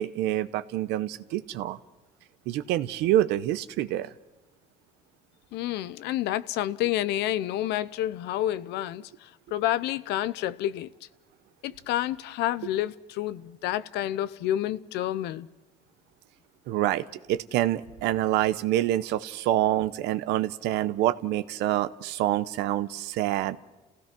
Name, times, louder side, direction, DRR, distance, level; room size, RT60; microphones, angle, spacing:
voice 1, 0.0-1.8 2.5-4.1 16.7-23.6, right 13 dB, 90° right, 0.8 m, -26 dB
voice 2, 5.5-9.1 9.5-10.9 11.6-15.5, left 13 dB, 85° left, 0.7 m, -29 dB
29.5 x 16.0 x 6.0 m
cardioid pair, 110°, 17 cm